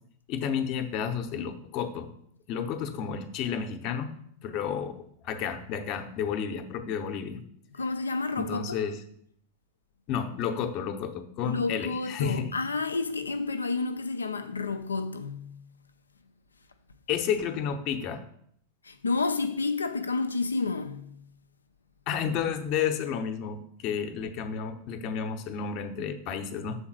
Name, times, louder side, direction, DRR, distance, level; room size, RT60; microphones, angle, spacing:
voice 1, 0.3-2.1 2.5-4.1 4.4-7.4 8.3-9.0 10.1-12.6 17.1-18.2 22.1-26.8, left 7 dB, 40° left, 0.8 m, -31 dB
voice 2, 7.8-8.8 11.4-15.6 18.8-21.2, left 3 dB, 75° left, 0.4 m, -30 dB
7.1 x 3.9 x 6.0 m
figure-of-eight pair, 90°, 0 cm